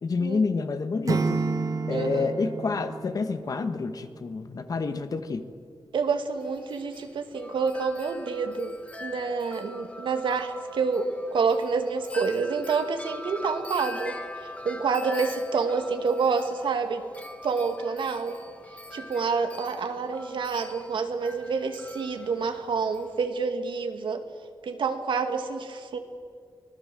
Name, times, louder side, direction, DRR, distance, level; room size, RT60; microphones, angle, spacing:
voice 1, 0.0-1.4 1.9-5.5, left 4 dB, 50° left, 9 dB, 1.5 m, -28 dB
Acoustic guitar / Strum, 1.1-4.1, right 4 dB, 45° right, 1.1 m, -30 dB
voice 2, 1.9-2.3 5.9-8.7 9.0-14.1 14.6-17.0 17.4-18.3 18.9-24.2 24.6-26.0, right 5 dB, 85° right, 6 dB, 2.1 m, -28 dB
Wind chime, 6.4-23.3, left 1 dB, 15° left, 1.5 m, -43 dB
24.5 x 19.5 x 7.7 m, 2.1 s
wide cardioid pair, 150°, 8 cm